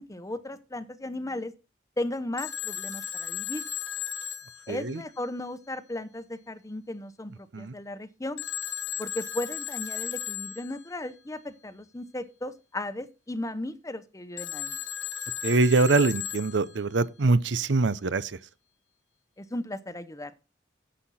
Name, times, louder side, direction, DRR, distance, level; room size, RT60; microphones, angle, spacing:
voice 1, 0.0-1.5 2.0-3.6 4.7-8.4 9.0-14.8 19.4-20.3, left 1 dB, 20° left, 0.9 m, -36 dB
Telephone, 2.4-5.5 8.4-10.9 14.4-17.0, left 9 dB, 70° left, 1.2 m, -36 dB
voice 2, 4.7-5.0 7.5-7.7 15.4-18.4, right 3 dB, 75° right, 0.7 m, -24 dB
10.0 x 7.7 x 4.2 m
head